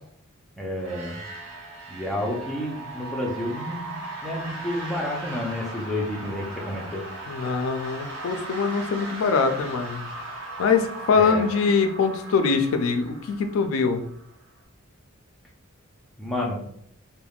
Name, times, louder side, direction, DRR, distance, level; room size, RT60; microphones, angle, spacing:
voice 1, 0.6-1.2 1.9-3.9 4.2-7.0 11.1-11.4 16.2-16.6, left 1 dB, ahead, -3 dB, 0.4 m, -30 dB
sound 1, 0.8-14.5, right 2 dB, 55° right, 0.9 m, -38 dB
voice 2, 7.3-10.0 10.6-14.0, left 5 dB, 70° left, 7 dB, 0.3 m, -23 dB
3.3 x 2.1 x 2.3 m, 0.70 s
head